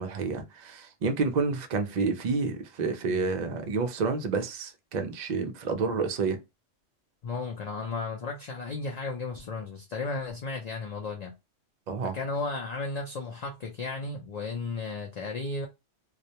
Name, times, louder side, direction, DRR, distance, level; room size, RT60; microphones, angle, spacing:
voice 1, 0.0-6.4 11.9-12.2, right 4 dB, 60° right, 0.4 m, -29 dB
voice 2, 7.2-11.3 12.1-15.7, left 3 dB, 60° left, 0.4 m, -34 dB
2.3 x 2.1 x 2.7 m
omnidirectional pair, 1.2 m